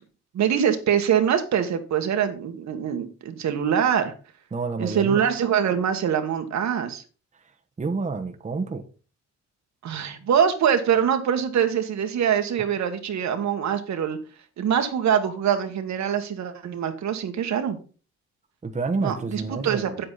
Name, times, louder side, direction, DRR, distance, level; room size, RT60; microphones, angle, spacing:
voice 1, 0.3-4.1 4.8-7.0 9.8-14.2 14.6-17.8 19.0-20.0, right 8 dB, 65° right, 1.6 m, -24 dB
voice 2, 4.5-5.2 7.8-8.8 18.6-20.0, right 4 dB, 25° right, 1.2 m, -29 dB
8.5 x 7.9 x 4.1 m
cardioid pair, 90°, 30 cm